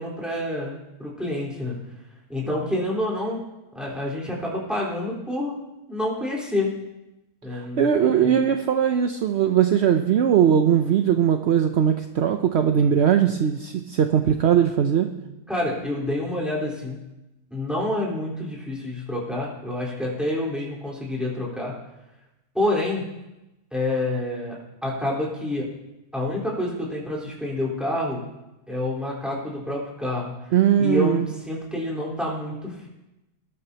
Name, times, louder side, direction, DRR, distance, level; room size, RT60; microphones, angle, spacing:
voice 1, 0.0-1.8 2.3-3.4 3.7-5.6 5.9-6.7 7.4-8.4 15.5-17.0 17.5-21.7 22.5-23.0 23.7-24.5 24.8-25.7 26.1-28.2 28.7-30.5 30.8-32.9, left 1 dB, ahead, -5 dB, 4.1 m, -28 dB
voice 2, 7.5-15.1 30.5-31.3, right 9 dB, 60° right, 6 dB, 0.7 m, -20 dB
21.0 x 12.0 x 2.9 m, 0.97 s
omnidirectional pair, 1.8 m